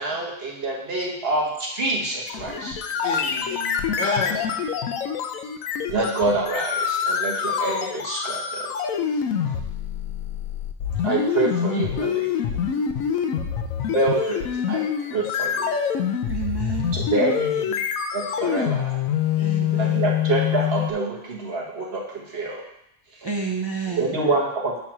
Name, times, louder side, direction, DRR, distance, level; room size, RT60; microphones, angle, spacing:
voice 1, 0.0-2.8 5.9-8.7 11.0-12.3 13.9-15.7 16.9-17.8 18.1-19.0 19.7-22.6 24.0-24.8, right 2 dB, 50° right, -1 dB, 1.3 m, -26 dB
sound 1, 2.3-20.9, left 8 dB, 90° left, 1.0 m, -26 dB
voice 2, 3.0-4.6 9.1-9.2 19.4-20.0 23.9-24.3, left 3 dB, 60° left, 0 dB, 1.4 m, -33 dB
voice 3, 16.2-16.9 19.4-20.0 23.2-24.2, right 5 dB, 30° right, -1 dB, 0.4 m, -30 dB
8.2 x 3.1 x 5.9 m, 0.78 s
omnidirectional pair, 1.4 m